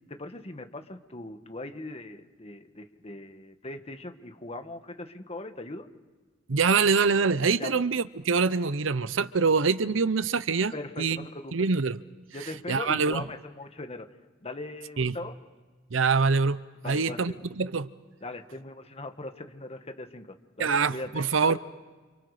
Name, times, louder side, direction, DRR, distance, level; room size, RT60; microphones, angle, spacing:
voice 1, 0.1-5.9 7.6-7.7 10.7-11.6 12.3-14.1 14.4-15.4 16.8-17.4 18.2-21.6, left 2 dB, 30° left, 1.6 m, -40 dB
voice 2, 6.5-11.2 11.5-12.0 12.7-13.2 15.0-15.2 15.9-17.9 20.6-21.6, right 5 dB, 75° right, 0.8 m, -25 dB
30.0 x 28.5 x 5.0 m
head